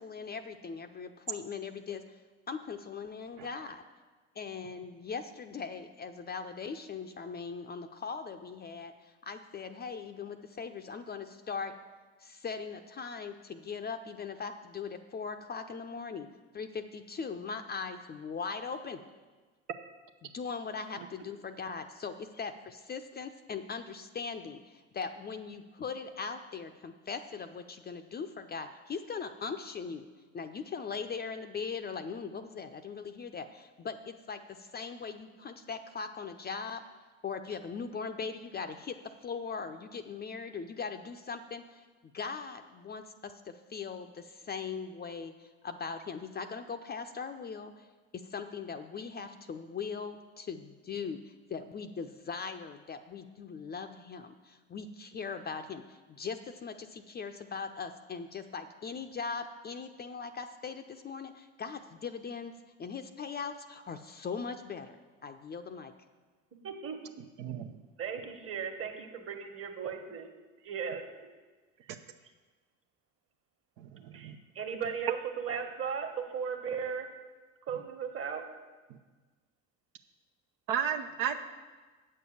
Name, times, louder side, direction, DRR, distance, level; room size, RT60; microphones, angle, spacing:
voice 1, 0.0-2.0 2.5-3.8 4.3-11.7 12.2-16.3 16.5-19.0 20.2-30.1 30.3-36.8 37.2-41.8 42.1-47.9 48.1-62.5 62.8-65.9, left 5 dB, 25° left, 8 dB, 0.6 m, -40 dB
voice 2, 66.6-67.0 68.0-70.3 70.6-71.0 74.1-77.1 77.7-78.4, right 6 dB, 35° right, 5 dB, 1.6 m, -36 dB
voice 3, 67.4-67.7 74.2-74.4 80.7-81.4, right 8 dB, 60° right, 5 dB, 0.8 m, -32 dB
8.5 x 6.6 x 7.0 m, 1.3 s
hypercardioid pair, 70°, 39 cm